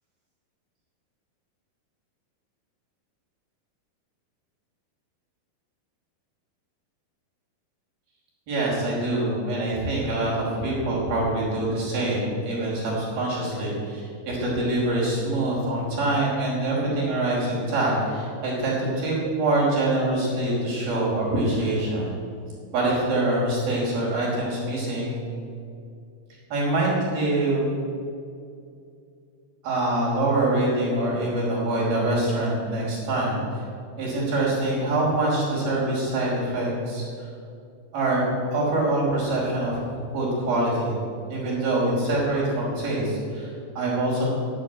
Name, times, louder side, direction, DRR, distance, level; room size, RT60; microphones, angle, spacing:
voice 1, 8.5-22.1 22.7-25.2 26.5-27.8 29.6-33.6 34.0-37.0 37.9-41.0 41.3-44.3, right 2 dB, 85° right, -5 dB, 6.9 m, -25 dB
11.5 x 11.5 x 9.0 m, 2.4 s
omnidirectional pair, 4.2 m